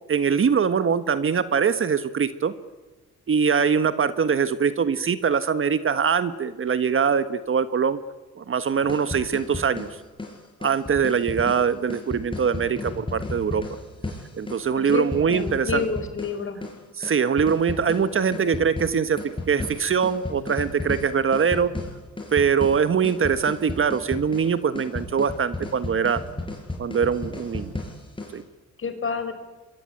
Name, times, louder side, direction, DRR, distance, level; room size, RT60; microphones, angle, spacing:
voice 1, 0.1-2.5 3.3-8.0 8.4-9.9 10.6-13.6 14.4-15.8 17.0-21.7 22.3-26.2 26.8-27.7 28.3-28.4, right 6 dB, 45° right, 12 dB, 1.5 m, -23 dB
sound 1, 8.7-28.4, left 2 dB, 15° left, 6.4 m, -35 dB
voice 2, 14.7-16.6 28.8-29.3, left 5 dB, 45° left, 9 dB, 5.2 m, -29 dB
25.5 x 22.5 x 9.2 m, 1.2 s
cardioid pair, 90°, 30 cm